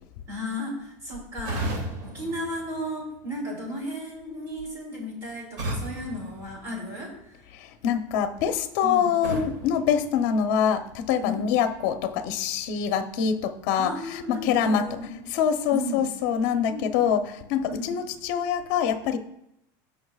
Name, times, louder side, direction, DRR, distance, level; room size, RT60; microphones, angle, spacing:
voice 1, 0.3-7.3 8.8-9.1 11.2-11.5 13.7-15.4 15.7-16.0 16.7-17.2 17.7-17.9, equal, 30° right, -2 dB, 3.3 m, -35 dB
sound 1, 1.4-3.4 5.6-7.3 9.2-10.8, right 1 dB, 85° right, 2.8 m, -35 dB
voice 2, 7.8-13.9 14.3-14.9 15.3-17.2 17.5-19.2, left 8 dB, 55° left, 7 dB, 0.8 m, -24 dB
16.0 x 5.4 x 2.4 m, 0.79 s
cardioid pair, 180°, 10 cm